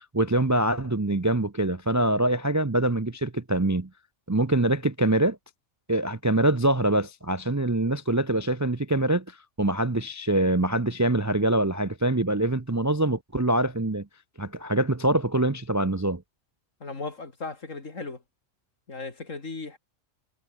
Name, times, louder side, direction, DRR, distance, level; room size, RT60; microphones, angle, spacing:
voice 1, 0.0-3.9 4.3-5.4 5.9-14.1 14.4-16.2, right 1 dB, 20° right, 0.5 m, -24 dB
voice 2, 16.8-18.2 18.9-19.8, left 3 dB, 70° left, 3.4 m, -36 dB
omnidirectional pair, 1.4 m